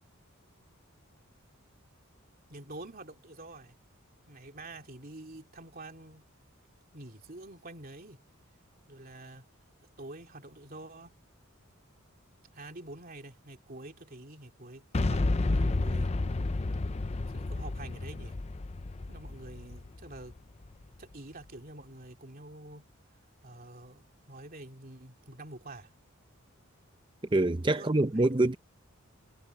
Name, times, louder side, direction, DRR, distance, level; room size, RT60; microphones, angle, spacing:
voice 1, 2.5-3.8 4.3-6.3 6.9-8.2 8.9-9.5 9.8-11.2 12.5-16.1 17.3-18.4 19.1-20.4 21.0-22.9 23.4-25.9 27.8-28.3, right 2 dB, 45° right, 3.2 m, -47 dB
Boom, 14.9-20.8, left 2 dB, 30° left, 0.5 m, -31 dB
voice 2, 27.3-28.5, right 2 dB, 25° right, 0.7 m, -25 dB
head